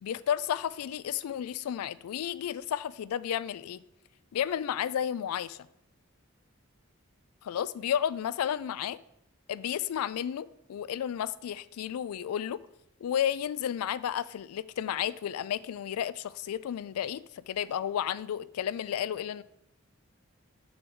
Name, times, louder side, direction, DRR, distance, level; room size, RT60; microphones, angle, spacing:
voice 1, 0.0-3.8 4.3-5.6 7.4-9.0 9.5-12.6 13.0-19.4, left 9 dB, 90° left, 0.3 m, -32 dB
6.8 x 4.5 x 5.4 m
head